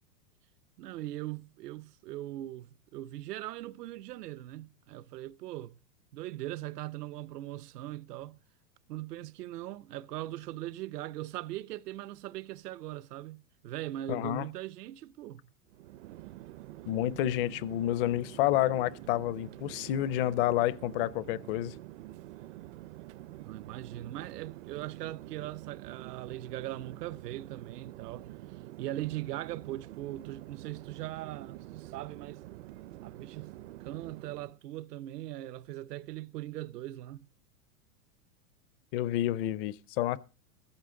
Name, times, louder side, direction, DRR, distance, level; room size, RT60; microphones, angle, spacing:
voice 1, 0.8-5.8 6.1-8.4 8.9-15.4 23.4-32.4 33.0-33.5 33.8-37.3, right 15 dB, 80° right, 0.8 m, -40 dB
voice 2, 14.1-14.4 16.9-21.7 38.9-40.2, left 14 dB, 40° left, 0.6 m, -29 dB
Chatter / Fixed-wing aircraft airplane, 15.7-34.6, right 16 dB, 50° right, 0.5 m, -47 dB
14.5 x 14.5 x 3.7 m
supercardioid pair, 145°, 47 cm